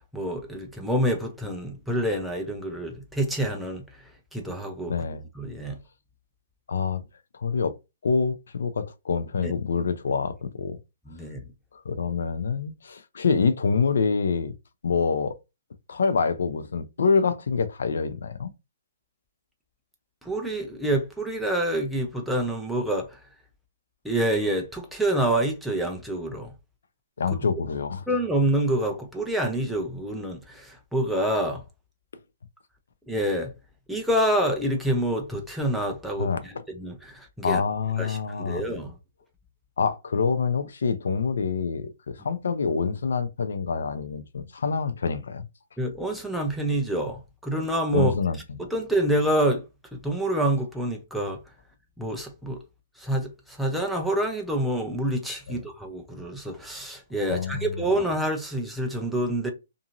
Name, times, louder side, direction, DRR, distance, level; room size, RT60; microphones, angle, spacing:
voice 1, 0.1-3.8 4.3-5.0 5.4-5.8 9.4-9.5 11.1-11.4 20.2-23.2 24.0-26.5 28.1-31.6 33.1-33.5 33.9-37.6 38.0-38.9 45.8-48.1 48.6-49.6 49.9-51.4 52.0-52.6 53.0-59.5, right 1 dB, ahead, 0.4 m, -27 dB
voice 2, 4.9-5.2 6.7-7.0 7.3-7.7 8.0-10.8 11.7-14.5 14.8-15.4 15.9-18.5 27.2-28.0 36.2-36.5 37.4-38.6 39.8-45.5 47.9-48.6 55.5-55.6 57.3-57.7, left 5 dB, 80° left, 0.5 m, -26 dB
2.9 x 2.6 x 2.4 m
hypercardioid pair, 175°, 0 cm